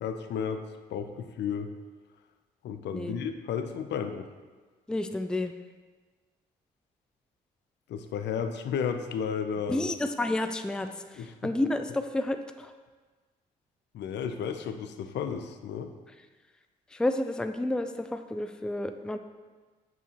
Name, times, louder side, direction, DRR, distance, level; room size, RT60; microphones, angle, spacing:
voice 1, 0.0-0.6 0.9-1.7 2.6-4.3 7.9-9.9 11.2-11.3 13.9-15.9, left 7 dB, 55° left, 8 dB, 0.7 m, -33 dB
voice 2, 4.9-5.5 9.7-12.7 16.9-19.2, left 1 dB, 5° left, 8 dB, 0.4 m, -30 dB
8.0 x 7.3 x 3.0 m, 1.4 s
hypercardioid pair, 45°, 21 cm